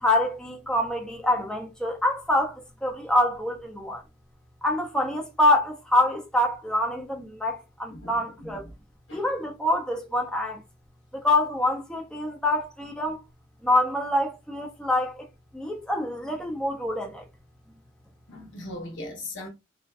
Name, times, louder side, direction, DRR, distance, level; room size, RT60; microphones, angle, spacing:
voice 1, 0.0-4.0 4.6-8.6 9.1-10.6 11.1-13.2 13.6-15.3 15.5-17.2, left 1 dB, 5° left, 0.5 m, -26 dB
voice 2, 7.9-8.6 9.1-9.3 18.3-19.5, left 2 dB, 80° left, 0.8 m, -39 dB
2.5 x 2.1 x 2.3 m
head